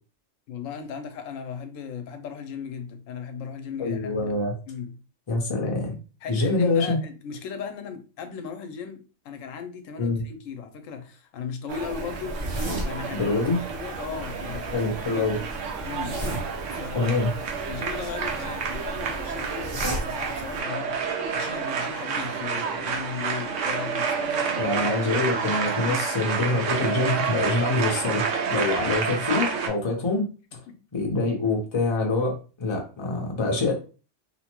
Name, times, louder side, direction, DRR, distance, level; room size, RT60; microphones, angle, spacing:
voice 1, 0.5-4.2 4.7-5.0 6.2-12.4 12.8-13.4 13.7-14.8 15.1-15.5 15.8-16.2 16.7-17.1 17.6-21.0 21.3-25.3 25.9-26.0 30.7-30.8, left 7 dB, 90° left, 1.0 m, -37 dB
voice 2, 3.8-4.5 5.3-6.0 6.3-7.0 10.0-10.2 13.1-13.6 14.7-15.4 16.9-17.3 24.6-30.2 30.5-30.6 30.9-33.7, left 3 dB, 30° left, 0.5 m, -25 dB
sound 1, 11.7-20.6, right 1 dB, 25° right, 0.7 m, -36 dB
sound 2, 11.7-29.7, right 6 dB, 75° right, 1.0 m, -29 dB
2.9 x 2.1 x 2.9 m
omnidirectional pair, 1.3 m